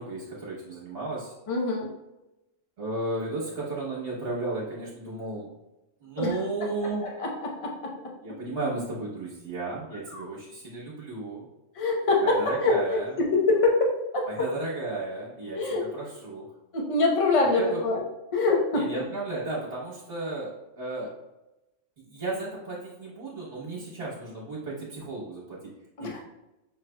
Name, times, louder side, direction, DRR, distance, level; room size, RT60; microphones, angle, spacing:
voice 1, 0.0-1.3 2.8-5.5 6.0-7.1 8.2-11.5 12.2-13.1 14.3-15.6 15.9-16.5 17.5-17.8 18.7-21.1 22.1-25.7 26.0-26.2, right 2 dB, 55° right, -7 dB, 1.4 m, -34 dB
voice 2, 1.5-1.9 6.2-6.7 7.0-7.9 10.1-10.3 11.7-14.3 15.5-15.9 16.7-18.0 18.3-18.8 26.0-26.2, left 2 dB, 30° left, -1 dB, 0.7 m, -25 dB
6.1 x 3.3 x 2.2 m, 0.96 s
omnidirectional pair, 1.3 m